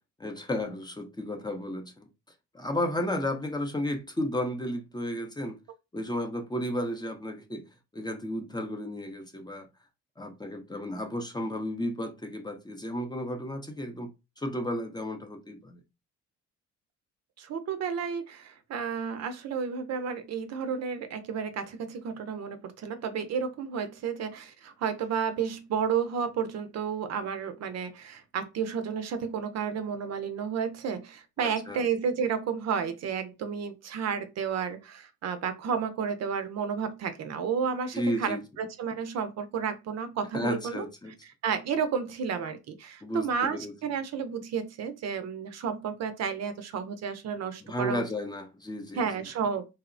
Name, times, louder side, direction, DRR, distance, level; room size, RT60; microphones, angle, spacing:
voice 1, 0.2-2.1 2.5-5.6 5.9-7.6 7.9-9.7 10.2-14.1 14.4-15.8 31.4-31.8 37.9-38.4 40.3-41.1 43.0-43.7 47.6-49.1, left 1 dB, 15° left, 0.5 m, -33 dB
voice 2, 17.4-40.9 41.4-48.0 49.0-49.7, right 6 dB, 60° right, 0.5 m, -32 dB
2.8 x 2.0 x 2.5 m
cardioid pair, 90°, 30 cm